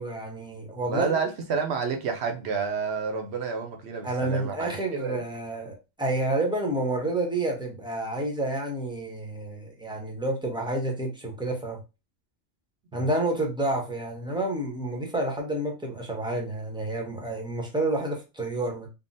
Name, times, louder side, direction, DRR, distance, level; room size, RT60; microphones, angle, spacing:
voice 1, 0.0-1.2 4.0-11.8 12.9-18.9, right 2 dB, 5° right, 0.5 m, -29 dB
voice 2, 0.9-5.2 12.9-13.1, right 5 dB, 65° right, 0.8 m, -30 dB
3.6 x 2.0 x 2.5 m
omnidirectional pair, 1.2 m